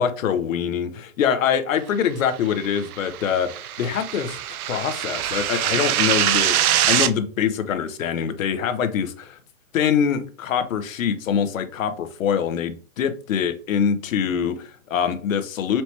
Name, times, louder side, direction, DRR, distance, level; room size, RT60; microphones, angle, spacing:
voice 1, 0.0-4.4 4.7-6.6 6.9-9.4 9.7-15.8, left 8 dB, 65° left, 9 dB, 0.8 m, -24 dB
sound 1, 2.6-7.1, right 11 dB, 80° right, 0.6 m, -23 dB
4.3 x 2.9 x 3.2 m, 0.41 s
hypercardioid pair, 155°, 43 cm